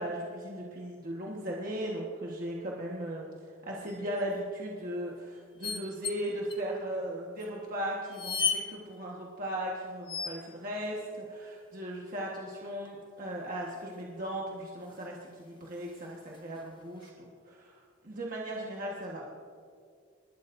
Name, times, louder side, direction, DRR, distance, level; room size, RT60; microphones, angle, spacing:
voice 1, 0.0-3.2 3.7-19.3, right 1 dB, 45° right, -3 dB, 1.4 m, -37 dB
sound 1, 3.9-4.2 5.6-6.2 6.5-6.6 7.4-7.5 8.1-8.6 10.1-10.5 12.5-13.1 14.6-14.7 14.9-15.1 15.8-16.6 17.0-17.1, left 5 dB, 25° left, 0.9 m, -34 dB
28.5 x 12.5 x 2.6 m, 2.3 s
head